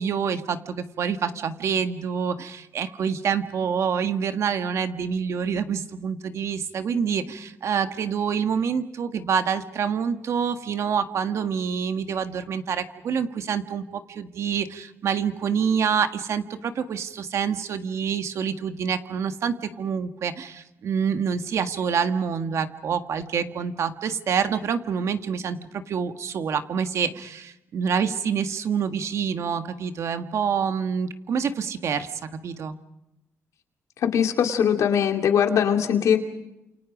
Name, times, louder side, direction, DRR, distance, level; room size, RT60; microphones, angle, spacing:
voice 1, 0.0-32.8, right 7 dB, 65° right, 8 dB, 1.6 m, -27 dB
voice 2, 34.0-36.2, left 8 dB, 80° left, 4 dB, 2.7 m, -21 dB
29.5 x 28.0 x 5.0 m, 0.92 s
cardioid pair, 115°, 5 cm